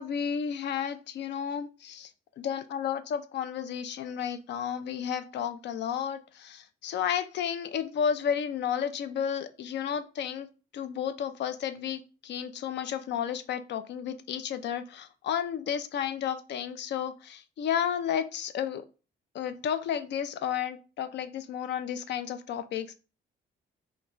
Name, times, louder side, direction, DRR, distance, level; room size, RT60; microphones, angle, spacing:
voice 1, 0.0-2.1 2.4-10.5 10.7-18.8 19.3-23.0, left 8 dB, 60° left, 12 dB, 0.4 m, -32 dB
3.0 x 2.2 x 3.8 m, 0.34 s
cardioid pair, 90°, 20 cm